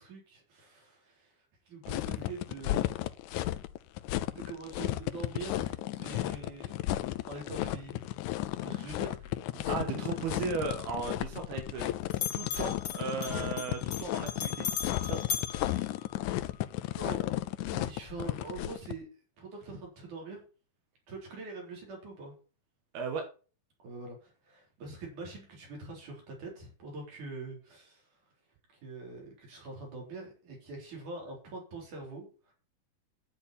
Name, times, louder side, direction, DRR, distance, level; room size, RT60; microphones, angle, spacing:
voice 1, 0.0-2.8 4.5-6.7 7.3-8.1 8.6-10.2 16.1-19.1 19.4-20.4 21.1-22.3 23.8-28.1 28.7-32.5, right 3 dB, 55° right, 0 dB, 5.3 m, -44 dB
sound 1, 1.9-18.9, left 15 dB, 90° left, 1.8 m, -34 dB
voice 2, 9.7-12.0 12.3-14.7 15.0-15.2 22.9-23.2, right 5 dB, 90° right, 4 dB, 3.5 m, -36 dB
Bell, 10.5-11.9 12.1-16.6, left 8 dB, 60° left, 1.1 m, -39 dB
10.5 x 9.6 x 4.3 m, 0.36 s
omnidirectional pair, 4.2 m